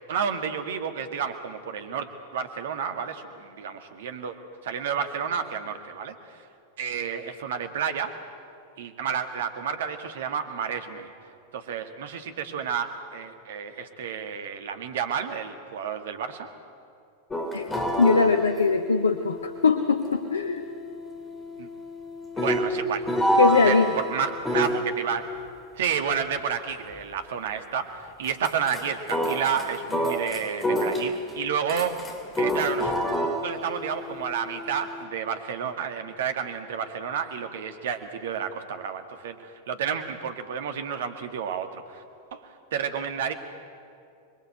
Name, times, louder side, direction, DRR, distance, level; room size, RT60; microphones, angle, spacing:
voice 1, 0.1-4.4 4.6-6.4 6.8-8.1 8.8-11.1 11.5-16.5 21.6-21.7 22.4-23.0 23.6-25.2 25.7-31.9 32.4-32.9 33.4-42.0 42.3-43.3, right 7 dB, 60° right, 7 dB, 2.0 m, -31 dB
sound 1, 17.3-24.8 28.2-28.8 29.1-31.3 31.7-35.0, equal, 15° left, 3.4 m, -28 dB
voice 2, 18.0-20.6 23.4-23.9, left 4 dB, 75° left, 8 dB, 1.1 m, -21 dB
26.5 x 22.0 x 7.8 m, 2.4 s
figure-of-eight pair, 90°, 0 cm